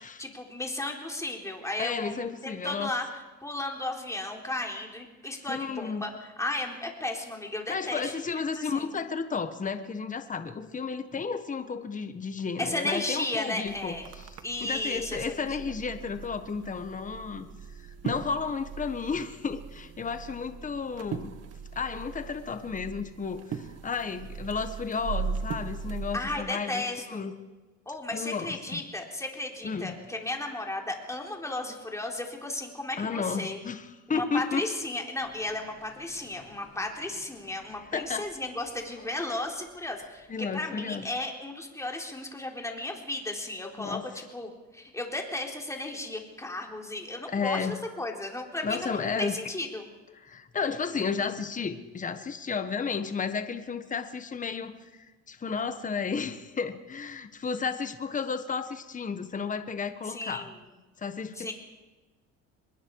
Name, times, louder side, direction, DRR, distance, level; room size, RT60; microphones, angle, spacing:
voice 1, 0.2-8.2 8.5-8.9 12.6-14.1 14.4-15.7 26.1-27.2 27.9-33.6 34.1-49.9 60.0-60.6 61.4-61.5, left 2 dB, 10° left, 1 dB, 3.9 m, -34 dB
voice 2, 1.8-2.9 5.5-6.0 7.7-14.3 14.6-17.5 17.8-21.4 21.7-26.8 27.1-27.3 28.1-28.8 29.6-29.9 33.0-34.7 37.9-38.3 40.3-41.0 43.8-44.1 47.3-47.8 48.6-49.4 50.1-60.5 61.0-61.5, left 5 dB, 25° left, 9 dB, 1.5 m, -33 dB
sound 1, 13.6-26.4, right 6 dB, 55° right, 1.9 m, -39 dB
Fixed-wing aircraft airplane, 35.2-40.4, left 4 dB, 45° left, 5.6 m, -57 dB
25.5 x 21.5 x 4.9 m, 1.2 s
cardioid pair, 120°, 30 cm